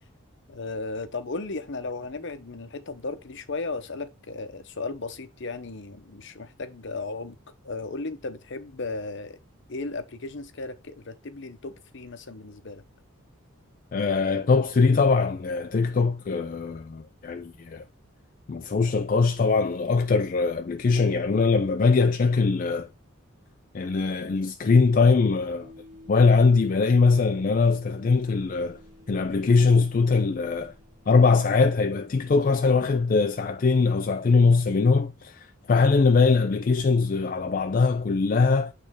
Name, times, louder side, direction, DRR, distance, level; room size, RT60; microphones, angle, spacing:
voice 1, 0.5-9.4 9.7-12.8, left 3 dB, 55° left, 0.8 m, -35 dB
voice 2, 13.9-17.8 18.5-22.9 23.7-25.7 26.1-28.8 29.1-30.7 31.1-38.7, left 4 dB, 40° left, 0.4 m, -21 dB
sound 1, 25.6-31.4, left 1 dB, 35° right, 1.1 m, -51 dB
8.5 x 3.3 x 3.6 m
head